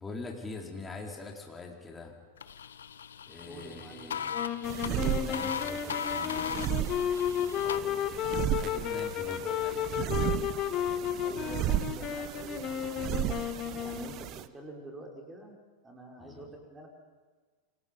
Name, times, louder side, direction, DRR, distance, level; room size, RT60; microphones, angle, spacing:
voice 1, 0.0-2.1 3.3-4.5 4.8-6.9 7.6-8.2 8.5-10.0 16.2-16.5, left 3 dB, 15° left, 0 dB, 4.5 m, -43 dB
sound 1, 2.4-7.8, left 8 dB, 65° left, 0.9 m, -38 dB
voice 2, 3.4-4.2 11.2-13.1 13.8-15.6 15.8-16.9, right 2 dB, 10° right, 1 dB, 5.4 m, -47 dB
sound 2, 4.3-14.3, left 10 dB, 35° left, 1.8 m, -33 dB
sound 3, 4.6-14.5, right 13 dB, 35° right, 0.9 m, -35 dB
28.0 x 25.5 x 5.5 m, 1.4 s
figure-of-eight pair, 90°, 0 cm